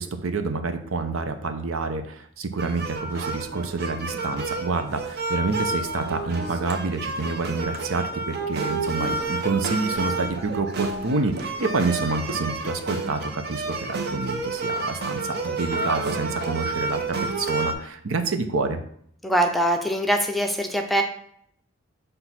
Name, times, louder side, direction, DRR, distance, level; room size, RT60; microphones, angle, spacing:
voice 1, 0.0-18.8, right 3 dB, 80° right, 8 dB, 0.7 m, -28 dB
sound 1, 2.6-17.7, right 3 dB, 50° right, 0.7 m, -30 dB
voice 2, 19.2-21.0, right 1 dB, ahead, 3 dB, 0.5 m, -22 dB
6.0 x 3.4 x 5.8 m, 0.66 s
head